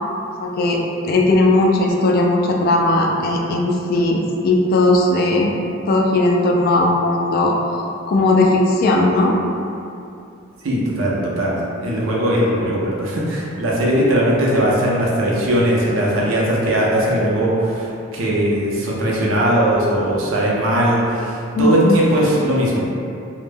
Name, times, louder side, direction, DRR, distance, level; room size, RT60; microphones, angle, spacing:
voice 1, 0.4-5.5 5.9-7.5 8.1-9.3 21.6-22.0, left 2 dB, 50° left, 0 dB, 0.3 m, -17 dB
voice 2, 10.6-11.6 11.8-22.9, right 1 dB, 80° right, -4 dB, 0.5 m, -19 dB
2.1 x 2.1 x 3.2 m, 2.6 s
head